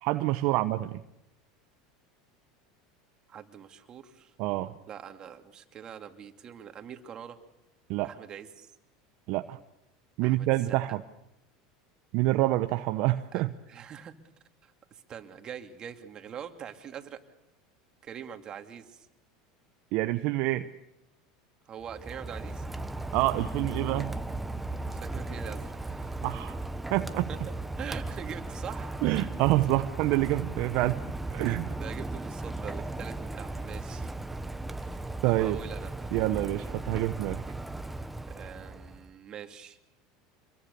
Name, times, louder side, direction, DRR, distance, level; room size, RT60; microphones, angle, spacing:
voice 1, 0.0-1.0 4.4-4.7 7.9-8.1 9.3-9.6 10.2-11.0 12.1-13.5 19.9-20.7 23.1-24.1 26.2-26.6 26.9-27.3 29.0-31.0 31.3-31.7 35.2-35.6 36.1-37.4, right 17 dB, 60° right, 9 dB, 1.0 m, -27 dB
voice 2, 3.3-4.3 4.9-7.4 8.0-8.7 10.2-10.5 13.3-14.1 14.6-17.2 18.0-19.1 21.7-22.7 24.9-26.3 27.3-29.0 30.7-30.9 31.8-34.1 34.7-36.1 38.3-39.8, right 8 dB, 40° right, 6 dB, 2.7 m, -43 dB
Rain, 21.8-39.1, right 2 dB, 5° right, 1.4 m, -36 dB
27.5 x 22.5 x 6.9 m, 0.87 s
hypercardioid pair, 90°, 2 cm